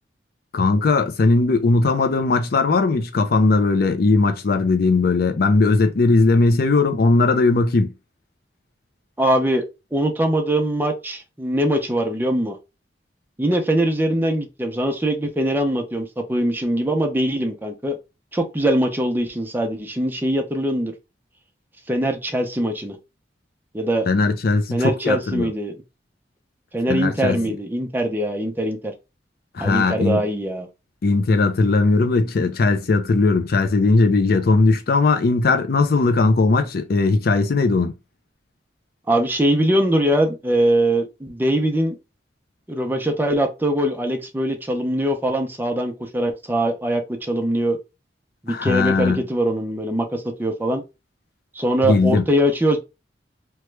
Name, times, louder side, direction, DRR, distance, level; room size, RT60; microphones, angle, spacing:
voice 1, 0.5-7.9 24.1-25.5 26.9-27.4 29.5-30.2 31.0-37.9 48.5-49.2 51.8-52.2, left 3 dB, 60° left, 0.5 m, -18 dB
voice 2, 9.2-9.7 9.9-12.6 13.4-18.0 18.3-20.9 21.9-23.0 23.7-24.1 24.7-25.7 26.7-28.9 29.6-30.7 39.1-42.0 42.7-47.8 48.4-50.8 51.5-52.8, right 1 dB, 10° right, 0.6 m, -22 dB
3.0 x 2.3 x 3.2 m
head